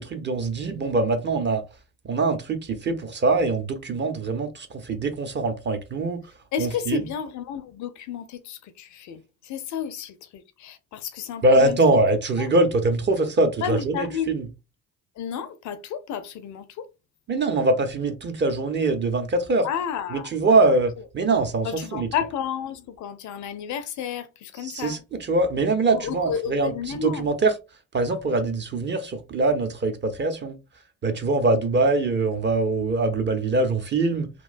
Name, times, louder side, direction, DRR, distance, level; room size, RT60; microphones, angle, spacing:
voice 1, 0.0-1.6 2.0-6.2 6.6-7.0 11.4-14.4 17.3-19.7 20.1-22.1 24.6-27.5 27.9-30.6 31.0-34.3, right 2 dB, 25° right, 0.5 m, -23 dB
voice 2, 6.5-12.0 12.4-12.5 13.6-14.4 15.2-16.9 19.6-20.8 21.6-25.0 25.9-27.3, left 8 dB, 45° left, 0.5 m, -32 dB
2.9 x 2.1 x 2.4 m
hypercardioid pair, 55°, 42 cm